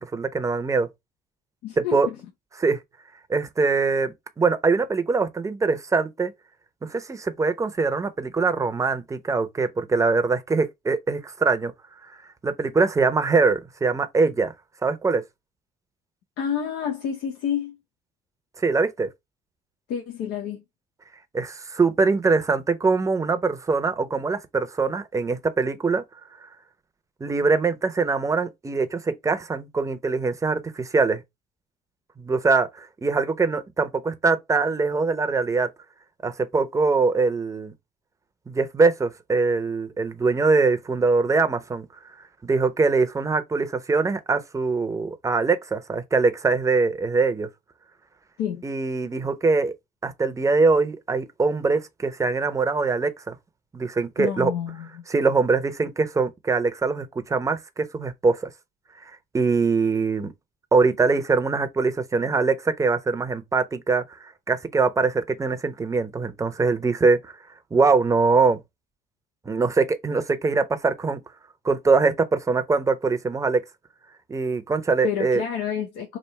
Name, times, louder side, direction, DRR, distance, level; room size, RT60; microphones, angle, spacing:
voice 1, 0.0-0.9 1.8-2.1 2.6-2.8 3.3-6.3 6.8-11.7 12.4-14.5 14.8-15.2 18.6-19.1 21.3-26.0 27.2-31.2 32.2-35.7 36.2-37.7 38.5-41.9 42.4-47.5 48.6-49.7 50.0-53.4 53.7-54.5 55.1-58.5 59.3-60.3 60.7-67.3 67.7-68.6 69.5-71.2 71.6-73.6 74.3-75.4, right 4 dB, 20° right, 0.6 m, -23 dB
voice 2, 1.6-2.2 16.4-17.8 19.9-20.6 48.4-48.6 54.2-55.0 75.0-76.2, left 8 dB, 90° left, 0.9 m, -29 dB
3.4 x 2.5 x 4.2 m
cardioid pair, 110°, 17 cm